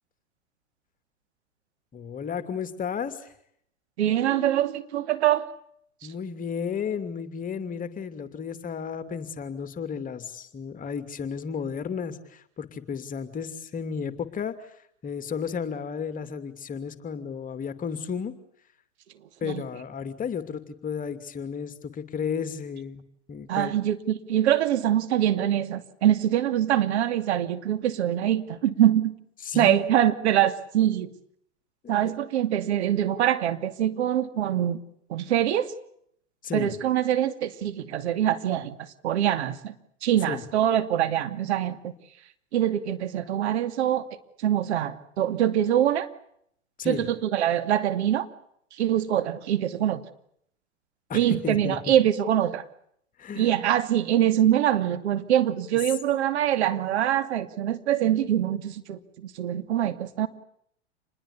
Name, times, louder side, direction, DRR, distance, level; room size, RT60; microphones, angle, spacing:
voice 1, 1.9-3.3 6.0-14.7 15.0-18.3 19.4-23.0 23.3-23.8 29.4-29.9 31.8-32.1 36.4-36.7 40.3-40.4 46.8-47.0 51.1-51.8 53.2-53.5, left 6 dB, 25° left, 11 dB, 2.7 m, -33 dB
voice 2, 4.0-5.5 6.0-6.1 19.4-19.6 23.5-29.1 29.6-31.1 31.9-34.8 35.1-35.7 36.5-39.7 40.0-41.9 42.5-44.1 44.4-46.1 46.8-48.3 48.7-50.0 51.1-52.6 53.3-60.3, right 11 dB, 65° right, 11 dB, 2.7 m, -24 dB
28.0 x 21.0 x 8.5 m, 0.70 s
hypercardioid pair, 105°, 36 cm